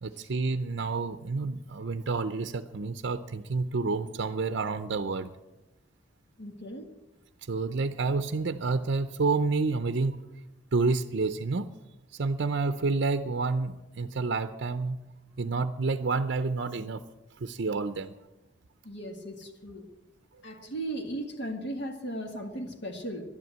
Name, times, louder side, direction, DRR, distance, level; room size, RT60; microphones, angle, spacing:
voice 1, 0.0-5.3 7.5-10.2 10.7-11.7 12.2-15.0 15.4-17.0 17.4-18.1, right 3 dB, 60° right, 9 dB, 0.6 m, -29 dB
voice 2, 6.4-6.9 18.8-19.9 20.4-23.2, right 1 dB, 60° left, 3 dB, 1.9 m, -37 dB
12.0 x 11.0 x 8.1 m, 1.0 s
head